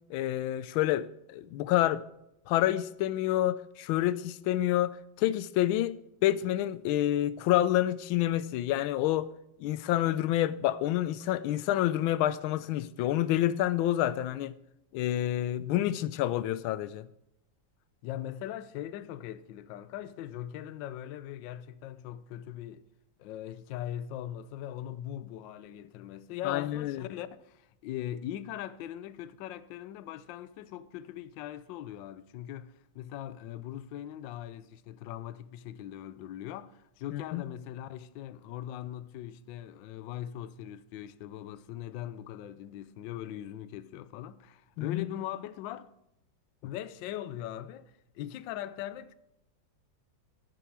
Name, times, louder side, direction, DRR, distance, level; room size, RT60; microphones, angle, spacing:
voice 1, 0.1-2.0 2.5-9.3 9.6-14.5 14.9-17.0 26.4-27.0 37.1-37.4 44.8-45.0, left 13 dB, 90° left, 1.4 m, -28 dB
voice 2, 18.0-22.9 23.2-45.9 46.6-49.1, left 12 dB, 75° left, 1.3 m, -40 dB
15.0 x 7.7 x 4.6 m
omnidirectional pair, 2.2 m